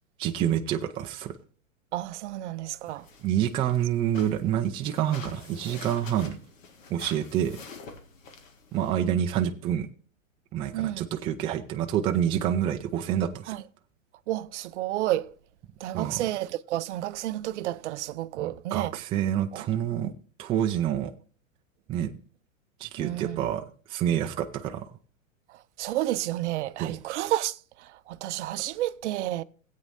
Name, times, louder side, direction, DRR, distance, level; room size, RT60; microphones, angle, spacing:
voice 1, 0.2-1.4 3.2-6.4 6.9-7.6 8.7-9.9 10.5-13.6 15.9-16.2 18.4-20.1 20.4-21.1 21.9-22.1 22.8-23.6 23.9-24.8 26.8-26.9, right 10 dB, 15° right, 0.4 m, -27 dB
voice 2, 1.9-3.1 10.7-11.1 13.5-13.6 14.3-15.3 15.8-19.0 19.5-19.7 23.0-23.5 25.5-29.4, right 15 dB, 60° right, 0.6 m, -31 dB
sound 1, 2.7-8.9, left 4 dB, 75° left, 1.8 m, -46 dB
16.5 x 8.4 x 2.6 m
hypercardioid pair, 125°, 39 cm